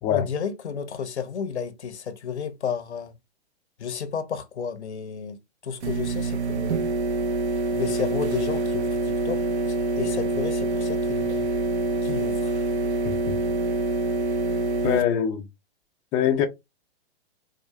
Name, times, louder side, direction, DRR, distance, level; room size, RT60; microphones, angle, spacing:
voice 1, 0.1-3.1 3.8-6.8 7.7-11.5 12.0-12.6, left 6 dB, 90° left, 0.8 m, -32 dB
sound 1, 5.8-15.0, right 2 dB, 80° right, 0.8 m, -26 dB
voice 2, 13.0-13.4 14.8-15.4 16.1-16.5, left 9 dB, 15° left, 0.4 m, -23 dB
4.7 x 2.4 x 2.2 m
hypercardioid pair, 125°, 33 cm